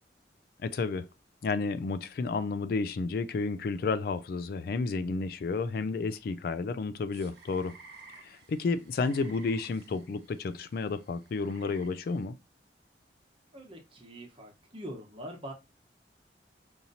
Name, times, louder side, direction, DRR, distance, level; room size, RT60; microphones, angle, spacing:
voice 1, 0.6-1.1 1.4-7.8 8.2-12.4, left 4 dB, 55° left, 0.3 m, -31 dB
sound 1, 7.1-12.3, right 3 dB, 70° right, 1.2 m, -55 dB
voice 2, 13.5-15.5, equal, 30° right, 1.0 m, -43 dB
5.1 x 2.8 x 2.7 m
head